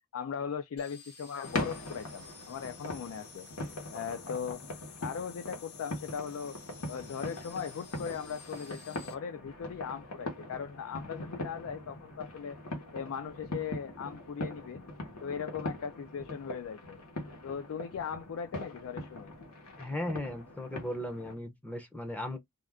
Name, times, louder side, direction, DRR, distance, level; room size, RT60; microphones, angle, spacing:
voice 1, 0.1-3.5 3.9-4.6 5.0-6.6 6.9-12.6 12.9-14.8 15.2-17.0 17.4-19.3, left 7 dB, 65° left, 0.3 m, -39 dB
sound 1, 0.8-9.1, left 6 dB, 50° left, 0.9 m, -52 dB
sound 2, 1.4-21.3, left 1 dB, 90° left, 1.1 m, -41 dB
voice 2, 19.8-22.4, left 1 dB, 5° left, 0.6 m, -37 dB
2.5 x 2.3 x 3.4 m
head